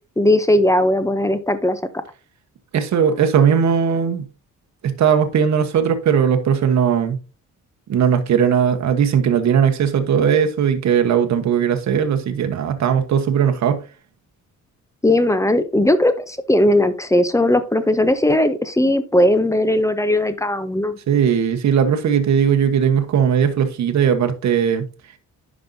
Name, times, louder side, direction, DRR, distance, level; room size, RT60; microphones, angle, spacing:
voice 1, 0.2-1.8 15.0-21.0, left 1 dB, 10° left, 0.6 m, -18 dB
voice 2, 2.7-4.2 4.8-7.2 7.9-13.8 21.1-24.9, right 7 dB, 60° right, 1.2 m, -18 dB
10.0 x 5.2 x 2.7 m
cardioid pair, 115°, 32 cm